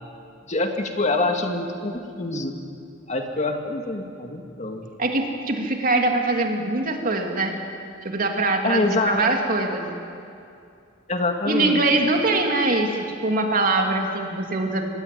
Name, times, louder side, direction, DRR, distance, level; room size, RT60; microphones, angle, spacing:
voice 1, 0.5-2.6 3.1-4.9 8.6-9.2 11.1-11.8, left 2 dB, 35° left, 4 dB, 2.2 m, -25 dB
voice 2, 5.0-7.6 8.0-9.9 11.5-12.9 13.2-14.9, right 2 dB, 45° right, 3 dB, 2.9 m, -22 dB
25.0 x 20.5 x 9.4 m, 2.5 s
head